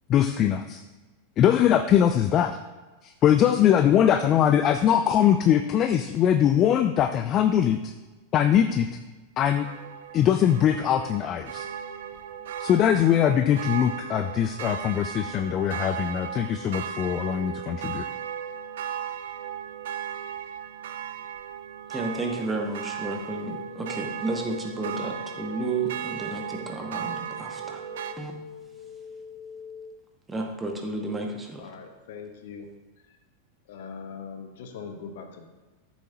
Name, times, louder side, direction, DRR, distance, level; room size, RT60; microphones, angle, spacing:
voice 1, 0.1-0.8 1.4-2.6 3.0-7.9 8.3-8.9 9.4-9.7 10.1-11.7 12.6-18.0, left 10 dB, 30° left, 9 dB, 0.4 m, -22 dB
sound 1, 9.6-28.1, right 9 dB, 60° right, 0.5 m, -36 dB
voice 2, 21.9-27.8 28.2-28.3 30.3-31.7, right 2 dB, 10° right, 2 dB, 1.3 m, -32 dB
sound 2, 23.5-29.9, left 3 dB, 75° left, 1.0 m, -44 dB
voice 3, 31.6-32.7 33.7-35.5, left 5 dB, 55° left, 6 dB, 1.0 m, -41 dB
13.0 x 7.2 x 2.8 m, 1.2 s
figure-of-eight pair, 90°, 0 cm